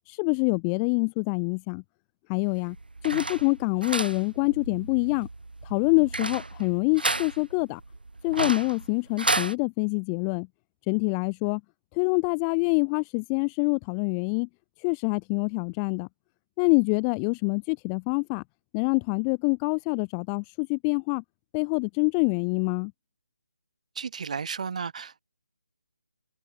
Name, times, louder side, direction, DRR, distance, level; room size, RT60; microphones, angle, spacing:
voice 1, 0.1-1.8 2.3-2.8 3.0-5.3 5.6-7.8 8.2-10.5 10.9-11.6 11.9-14.5 14.8-16.1 16.6-18.4 18.7-21.2 21.5-22.9, left 40 dB or more, 15° left, 0.4 m, -26 dB
sound 1, 2.5-9.5, right 2 dB, 75° right, 3.8 m, -32 dB
voice 2, 23.9-25.2, right 6 dB, 45° right, 4.6 m, -33 dB
figure-of-eight pair, 150°, 5 cm